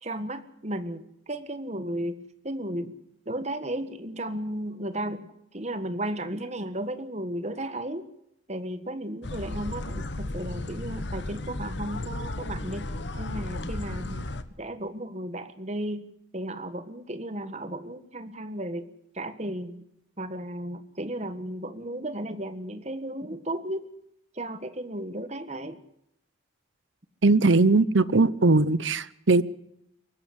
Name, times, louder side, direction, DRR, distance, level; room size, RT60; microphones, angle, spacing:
voice 1, 0.0-2.2 2.4-3.0 3.2-5.3 5.5-8.1 8.5-14.3 14.6-16.1 16.3-19.7 20.2-23.8 24.3-25.8, right 1 dB, 35° right, 11 dB, 1.5 m, -34 dB
sound 1, 9.2-14.4, left 2 dB, 60° left, 1.3 m, -34 dB
voice 2, 27.2-29.4, right 3 dB, 70° right, 18 dB, 0.9 m, -20 dB
23.0 x 14.0 x 8.1 m, 0.80 s
head